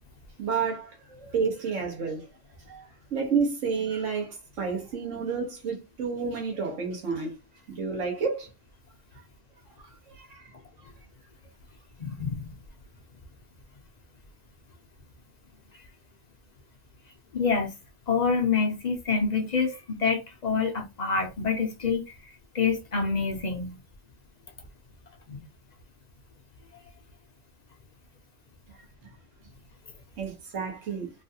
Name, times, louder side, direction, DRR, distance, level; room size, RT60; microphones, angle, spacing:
voice 1, 0.4-2.3 2.7-7.3 7.7-8.5 9.8-9.9 10.2-10.5 30.2-31.1, right 5 dB, 75° right, 1.4 m, -30 dB
voice 2, 12.0-12.5 17.3-17.7 18.1-22.2 22.5-23.8 25.3-25.4, left 5 dB, 50° left, 0.5 m, -27 dB
3.2 x 2.3 x 2.7 m
omnidirectional pair, 1.3 m